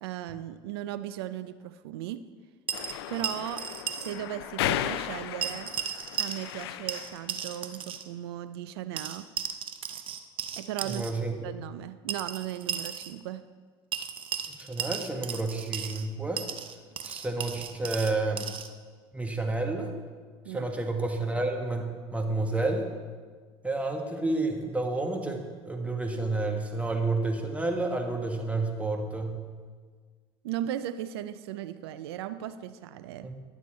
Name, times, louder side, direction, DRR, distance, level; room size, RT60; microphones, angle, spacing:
voice 1, 0.0-2.2 3.1-3.7 4.0-5.7 6.2-9.3 10.6-11.1 11.4-13.4 20.5-20.7 30.4-33.3, right 12 dB, 85° right, 13 dB, 0.4 m, -37 dB
sound 1, 2.7-7.3, left 12 dB, 85° left, 0.4 m, -35 dB
sound 2, 2.7-4.2 4.4-4.5 5.4-6.6 6.9-8.1 9.0-11.1 12.1-13.1 13.9-16.1 16.4-18.7, right 8 dB, 45° right, 0.7 m, -35 dB
voice 2, 10.8-11.4 14.6-16.4 17.0-18.5 19.1-19.9 20.5-22.9 23.6-29.4 33.2-33.3, right 2 dB, 10° right, 3 dB, 1.5 m, -30 dB
10.5 x 7.1 x 4.4 m, 1.5 s
hypercardioid pair, 80°, 13 cm